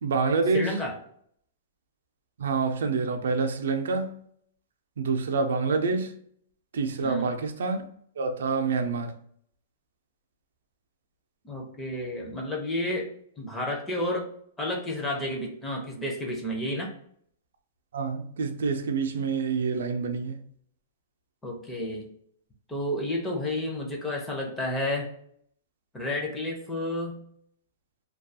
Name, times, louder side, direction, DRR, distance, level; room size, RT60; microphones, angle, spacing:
voice 1, 0.0-0.8 2.4-4.2 5.0-6.2 6.7-7.9 8.2-9.1 17.9-20.4, right 4 dB, 80° right, 0.4 m, -27 dB
voice 2, 0.5-0.9 7.0-7.3 11.4-13.1 13.4-14.3 14.6-16.9 21.4-22.1 22.7-25.1 25.9-27.2, left 1 dB, 10° left, 0.4 m, -31 dB
2.3 x 2.3 x 2.6 m
hypercardioid pair, 170°, 0 cm